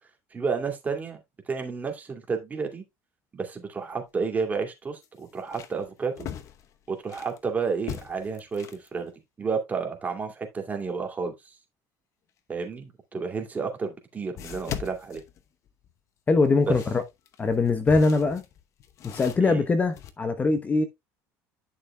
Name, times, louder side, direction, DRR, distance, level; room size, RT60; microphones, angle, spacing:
voice 1, 0.3-1.2 1.5-2.8 3.3-6.3 6.9-8.7 8.9-9.1 9.4-11.3 12.5-15.2 16.7-16.8 19.4-19.6, right 5 dB, 25° right, 2.3 m, -31 dB
sound 1, 3.8-4.0 4.4-4.5 5.0-7.4 7.8-8.9 13.1-13.2 14.4-15.9 16.4-20.1, left 9 dB, 50° left, 0.9 m, -40 dB
voice 2, 16.3-17.0 17.4-18.4 19.0-20.8, left 3 dB, 25° left, 0.9 m, -22 dB
11.0 x 6.5 x 2.3 m
cardioid pair, 115°, 7 cm